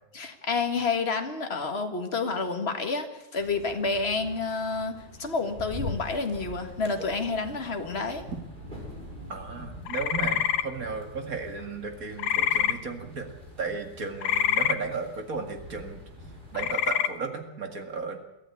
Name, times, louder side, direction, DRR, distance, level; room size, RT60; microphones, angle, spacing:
voice 1, 0.1-4.9 5.2-8.2, left 4 dB, 30° left, 6 dB, 1.9 m, -29 dB
sound 1, 3.4-16.8, left 1 dB, 20° right, 5.8 m, -44 dB
voice 2, 9.3-13.3 13.6-18.2, right 4 dB, 40° right, 5 dB, 2.4 m, -35 dB
sound 2, 9.9-10.6 12.2-12.7 14.2-14.8 16.6-17.1, left 10 dB, 80° left, 1.8 m, -25 dB
23.0 x 14.0 x 8.4 m, 0.95 s
omnidirectional pair, 2.4 m